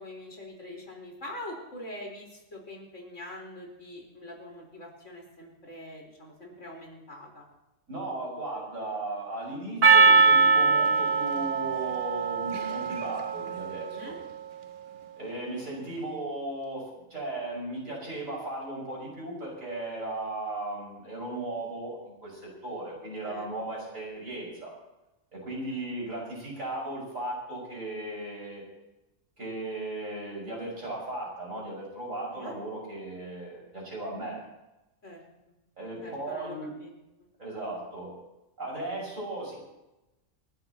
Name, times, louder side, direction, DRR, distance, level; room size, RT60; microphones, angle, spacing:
voice 1, 0.0-7.4 13.8-14.2 23.2-23.5 23.7-23.8 25.7-25.9 32.3-32.6 35.0-35.2 36.0-36.9 37.2-37.3, left 1 dB, 65° left, -1 dB, 4.7 m, -44 dB
voice 2, 7.9-14.1 15.2-24.7 25.3-28.6 29.4-34.4 35.8-36.7 37.4-38.1 38.6-39.5, right 2 dB, 80° right, -3 dB, 6.3 m, -36 dB
Percussion, 9.8-14.4, right 4 dB, 55° right, 1.0 m, -23 dB
28.0 x 12.0 x 3.0 m, 0.98 s
omnidirectional pair, 1.3 m